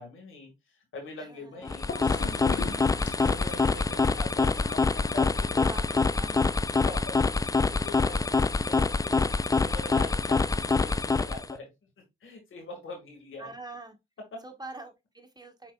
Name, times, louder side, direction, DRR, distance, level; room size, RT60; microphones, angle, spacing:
voice 1, 0.0-6.0 6.9-9.2 9.6-11.9 12.2-13.5 14.3-14.4, left 3 dB, 80° left, 1.9 m, -43 dB
voice 2, 1.2-1.9 2.7-3.3 5.6-6.5 13.4-14.0 14.4-15.7, right 2 dB, 20° right, 1.4 m, -45 dB
sound 1, 1.6-11.6, left 4 dB, 15° left, 0.3 m, -26 dB
Gurgling / Toilet flush, 1.9-5.9, left 5 dB, 60° left, 1.0 m, -41 dB
5.1 x 4.4 x 2.4 m
supercardioid pair, 40°, 21 cm